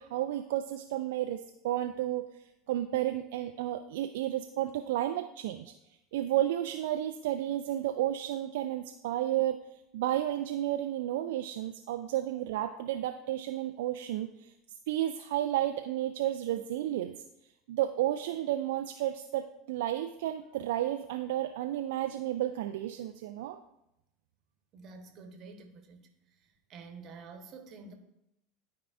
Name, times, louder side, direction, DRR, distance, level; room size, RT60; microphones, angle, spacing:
voice 1, 0.0-5.7 6.1-9.7 9.9-14.5 14.9-17.2 17.7-23.6, right 13 dB, 65° right, 7 dB, 0.3 m, -32 dB
voice 2, 24.7-26.1 26.4-27.9, right 4 dB, 45° right, 6 dB, 1.1 m, -49 dB
12.0 x 4.7 x 2.4 m, 0.84 s
figure-of-eight pair, 75°, 0 cm